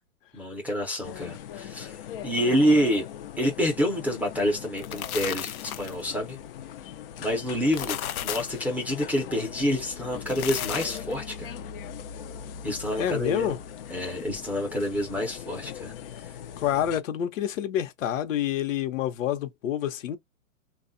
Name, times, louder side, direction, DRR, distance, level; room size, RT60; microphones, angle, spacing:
voice 1, 0.3-1.9 2.2-3.0 3.4-6.4 7.2-8.0 8.2-11.6 12.6-13.6 13.9-15.9, equal, 5° right, 0.5 m, -27 dB
sound 1, 1.0-17.0, left 9 dB, 45° left, 0.5 m, -41 dB
sound 2, 4.6-6.1 7.5-8.6 10.1-11.1, left 11 dB, 90° left, 0.6 m, -34 dB
voice 2, 13.0-13.6 16.6-20.2, left 10 dB, 65° left, 0.9 m, -28 dB
3.4 x 2.4 x 2.6 m
hypercardioid pair, 140°, 42 cm